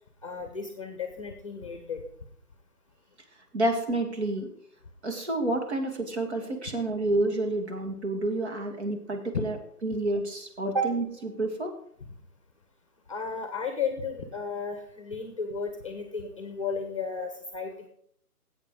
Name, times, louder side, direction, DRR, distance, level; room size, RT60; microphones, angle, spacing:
voice 1, 0.2-2.0 9.3-9.4 10.6-10.9 13.1-17.9, left 3 dB, 20° left, 5 dB, 0.9 m, -33 dB
voice 2, 3.5-4.5 5.0-9.6 9.8-11.0 11.4-11.7, right 2 dB, 45° right, 4 dB, 2.0 m, -29 dB
15.5 x 8.3 x 3.8 m, 0.67 s
hypercardioid pair, 165°, 46 cm